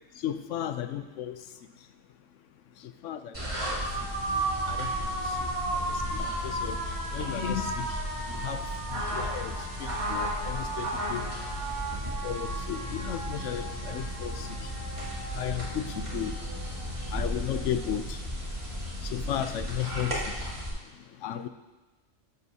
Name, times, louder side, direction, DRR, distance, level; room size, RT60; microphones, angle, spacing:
voice 1, 0.2-1.3 3.0-3.3 4.7-4.9 6.1-6.7 7.1-7.9 8.3-8.6 9.1-9.5 9.8-11.3 12.2-14.5 15.3-16.4 17.1-18.2 19.1-20.2 21.2-21.5, left 10 dB, 85° left, 10 dB, 1.0 m, -34 dB
sound 1, 3.3-20.7, right 1 dB, 25° right, 1.8 m, -33 dB
sound 2, 4.1-20.5, left 2 dB, 50° left, 1.2 m, -49 dB
12.5 x 7.8 x 2.8 m, 1.1 s
omnidirectional pair, 1.3 m